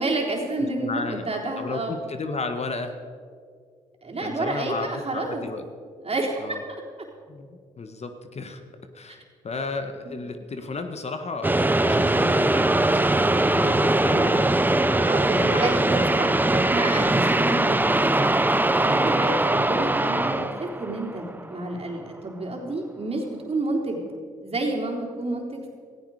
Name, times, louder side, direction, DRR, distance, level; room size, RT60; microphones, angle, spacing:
voice 1, 0.0-2.0 4.0-5.4 6.0-6.4 6.7-6.8 15.1-15.8 16.2-18.4 18.8-24.0 24.4-25.7, right 2 dB, 45° right, 0 dB, 3.8 m, -29 dB
voice 2, 0.6-3.0 4.2-5.6 6.4-6.6 7.3-8.6 8.9-13.0 13.5-14.5 15.4-15.7 15.9-16.3 16.6-16.8, left 3 dB, 45° left, 7 dB, 1.6 m, -33 dB
sound 1, 11.4-21.7, right 2 dB, 15° right, 0.8 m, -21 dB
17.0 x 15.0 x 5.0 m, 2.1 s
supercardioid pair, 50°, 15 cm